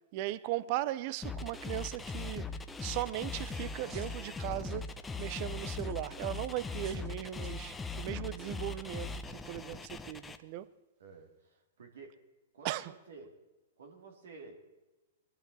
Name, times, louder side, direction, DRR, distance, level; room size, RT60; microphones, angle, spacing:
voice 1, 0.1-2.5 2.8-4.9 5.2-10.7 12.6-12.9, right 14 dB, 45° right, 0.6 m, -38 dB
sound 1, 1.2-10.4, left 4 dB, 10° left, 0.8 m, -40 dB
sound 2, 3.3-7.1 7.4-7.6 8.3-8.5 9.0-9.1, right 5 dB, 30° right, 2.0 m, -58 dB
voice 2, 11.0-12.2 12.5-13.3 13.8-14.6, right 4 dB, 85° right, 2.8 m, -52 dB
21.0 x 12.5 x 4.2 m
hypercardioid pair, 130°, 0 cm